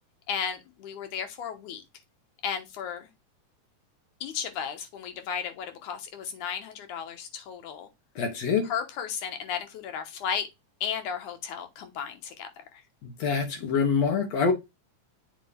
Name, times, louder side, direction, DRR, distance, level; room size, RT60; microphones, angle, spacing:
voice 1, 0.3-1.8 2.4-3.1 4.2-7.9 8.7-10.5 10.8-12.5, left 7 dB, 85° left, 2.6 m, -34 dB
voice 2, 8.2-8.7 13.0-14.5, left 5 dB, 60° left, 2.4 m, -25 dB
7.4 x 2.8 x 5.0 m
omnidirectional pair, 3.4 m